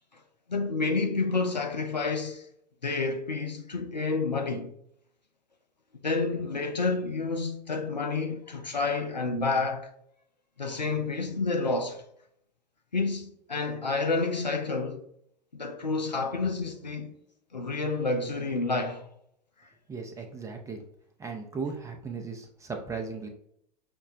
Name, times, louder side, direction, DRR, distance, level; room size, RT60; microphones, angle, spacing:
voice 1, 0.5-2.4 2.8-4.7 6.0-9.9 10.6-12.0 12.9-15.0 15.5-17.1 17.5-19.0, left 3 dB, 85° left, 0.5 m, -29 dB
voice 2, 19.9-20.8 21.2-23.3, right 4 dB, 15° right, 0.6 m, -36 dB
6.0 x 2.1 x 2.5 m
figure-of-eight pair, 85°, 21 cm